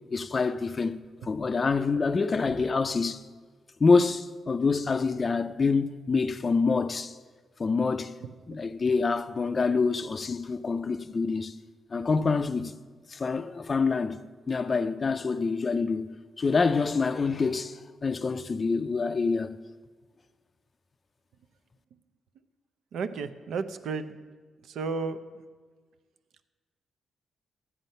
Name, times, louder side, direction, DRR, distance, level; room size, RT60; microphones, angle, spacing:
voice 1, 0.1-3.3 3.8-7.1 7.6-8.2 8.5-11.5 11.9-12.7 13.1-14.2 14.5-19.6, left 4 dB, 35° left, 0.4 m, -26 dB
voice 2, 22.9-24.1 24.7-25.2, right 4 dB, 80° right, 0.6 m, -32 dB
13.0 x 9.0 x 5.4 m
cardioid pair, 100°, 0 cm